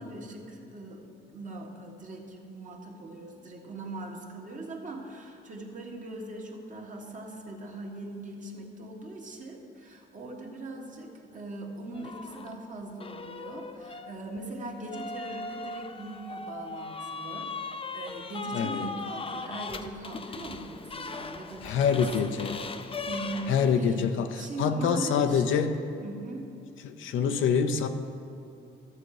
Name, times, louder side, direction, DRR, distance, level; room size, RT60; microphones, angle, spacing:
voice 1, 0.0-22.3 23.1-24.0 24.3-25.7 26.0-26.6, right 2 dB, 40° right, 0 dB, 1.7 m, -40 dB
sound 1, 11.9-12.6 13.0-23.9, left 4 dB, 25° left, 0.6 m, -39 dB
voice 2, 18.5-18.9 21.6-22.6 23.5-25.8 26.8-27.9, left 6 dB, 80° left, 7 dB, 0.7 m, -26 dB
12.5 x 7.4 x 4.8 m, 2.8 s
cardioid pair, 90°, 20 cm